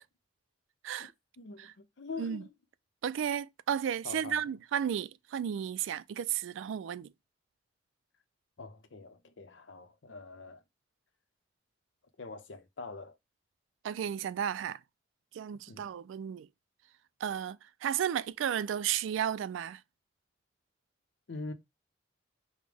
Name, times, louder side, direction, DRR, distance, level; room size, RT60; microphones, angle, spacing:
voice 1, 1.4-2.5 4.0-4.6 8.6-10.6 12.2-13.2 15.7-15.9 21.3-21.5, left 3 dB, 75° left, 0.7 m, -44 dB
voice 2, 3.0-7.1 13.8-14.8 15.3-16.5 17.2-19.8, right 9 dB, 90° right, 0.3 m, -33 dB
5.0 x 2.1 x 3.4 m
head